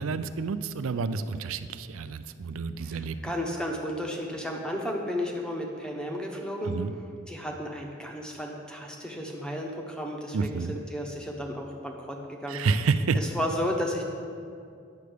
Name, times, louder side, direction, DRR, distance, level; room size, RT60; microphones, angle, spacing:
voice 1, 0.0-3.2 6.6-6.9 10.3-10.8 12.5-13.2, right 4 dB, 75° right, 12 dB, 0.4 m, -29 dB
voice 2, 2.8-6.7 7.3-12.6 13.1-14.0, equal, 5° left, 1 dB, 0.8 m, -33 dB
9.4 x 6.7 x 5.0 m, 2.3 s
head